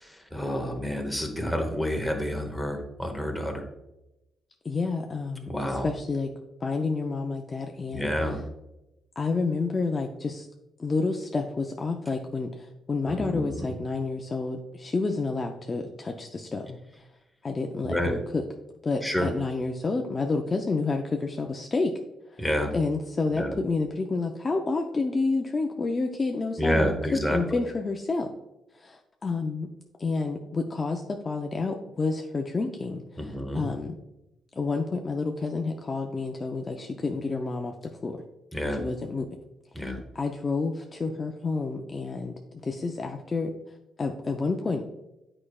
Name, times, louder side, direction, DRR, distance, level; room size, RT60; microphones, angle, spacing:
voice 1, 0.0-3.6 5.5-5.9 7.9-8.4 13.1-13.7 17.8-18.1 19.0-19.3 22.4-22.7 23.3-23.6 26.6-27.6 33.2-33.7 38.5-38.8 39.7-40.0, equal, ahead, 3 dB, 1.0 m, -29 dB
voice 2, 4.6-6.3 6.6-8.4 9.2-10.5 10.8-16.8 17.4-18.4 18.8-21.9 22.3-22.4 22.7-26.9 27.3-28.3 28.8-29.7 30.0-33.9 34.6-37.7 38.0-38.2 38.8-39.3 39.8-42.3 42.6-43.5 44.0-44.8, left 3 dB, 25° left, 3 dB, 0.4 m, -29 dB
8.6 x 4.8 x 2.3 m, 0.93 s
cardioid pair, 130°, 0 cm